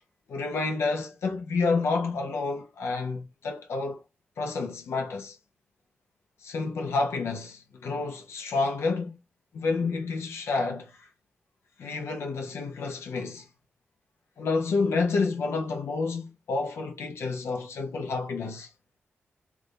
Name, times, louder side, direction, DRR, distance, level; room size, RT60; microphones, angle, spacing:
voice 1, 0.3-4.0 4.4-5.4 6.4-9.2 9.5-11.1 11.8-13.5 14.4-18.7, left 4 dB, 85° left, 0.9 m, -29 dB
3.6 x 2.5 x 3.2 m
cardioid pair, 60°, 4 cm